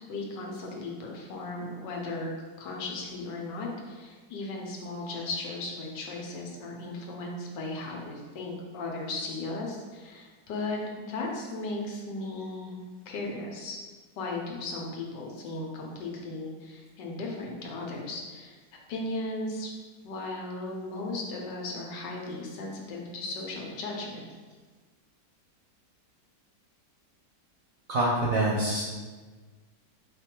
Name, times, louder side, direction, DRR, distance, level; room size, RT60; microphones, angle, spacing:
voice 1, 0.0-2.3 2.6-12.8 13.1-13.8 14.2-18.6 18.9-19.7 20.0-24.2, left 2 dB, 75° left, -1 dB, 1.4 m, -36 dB
voice 2, 27.9-28.8, right 1 dB, 65° right, -3 dB, 0.9 m, -25 dB
4.8 x 2.2 x 4.4 m, 1.4 s
omnidirectional pair, 1.9 m